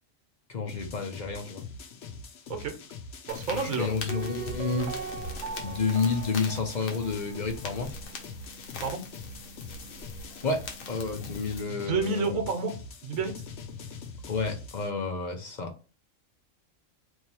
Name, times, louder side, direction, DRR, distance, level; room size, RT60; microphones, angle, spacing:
voice 1, 0.5-1.6 3.5-4.9 5.6-7.9 10.4-12.4 14.3-15.7, left 4 dB, 45° left, 0.6 m, -30 dB
sound 1, 0.7-14.9, left 4 dB, 65° left, 0.9 m, -43 dB
sound 2, 3.3-11.6, left 3 dB, 85° left, 1.2 m, -42 dB
voice 2, 3.3-3.9 8.8-9.0 11.7-12.7 13.0-13.3, right 5 dB, 85° right, 1.2 m, -29 dB
Piano, 4.1-7.9 8.1-8.2, right 6 dB, 65° right, 0.8 m, -40 dB
3.2 x 2.7 x 4.1 m
omnidirectional pair, 1.4 m